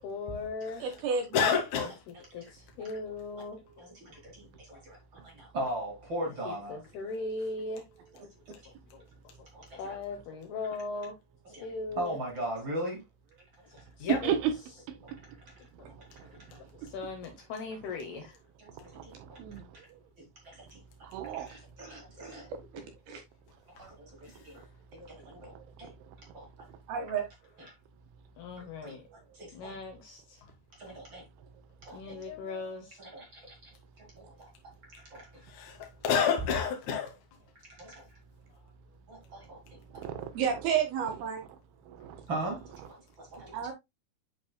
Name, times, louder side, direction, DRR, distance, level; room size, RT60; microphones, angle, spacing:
voice 1, 0.0-0.8 1.8-3.9 4.7-4.8 6.4-7.8 8.7-11.1 11.6-12.2 13.7-14.4 15.8-15.9 16.5-16.6 16.9-18.4 28.4-29.0 29.5-30.4 31.9-33.0 38.5-38.6, left 3 dB, 75° left, 2.5 m, -39 dB
voice 2, 0.8-1.5 23.1-23.2 26.9-27.3 40.4-41.4 43.5-43.7, right 7 dB, 65° right, 2.7 m, -30 dB
voice 3, 1.3-2.0 14.0-14.2 32.0-32.6 35.4-37.1, left 7 dB, 55° left, 2.5 m, -29 dB
voice 4, 3.9-6.8 8.6-8.7 9.5-10.0 11.5-11.7 12.0-13.0 13.7-13.8 15.0-15.1 16.0-16.1 18.6-19.4 20.2-20.3 20.5-20.8 21.3-22.5 23.8-24.6 24.9-25.9 26.3-26.5 28.8-28.9 29.3-29.7 30.8-31.2 31.8-32.0 33.0-33.7 34.0-34.5 34.9-35.4 37.6-38.1 39.1-39.6 42.3-43.6, right 1 dB, 35° right, 2.0 m, -39 dB
voice 5, 14.1-14.6 15.1-15.2 15.8-15.9 16.8-16.9 18.9-19.6 21.0-21.5 39.9-40.6 41.1-41.2 41.9-42.2 42.8-42.9, right 9 dB, 80° right, 3.2 m, -33 dB
11.0 x 4.2 x 2.2 m
omnidirectional pair, 5.5 m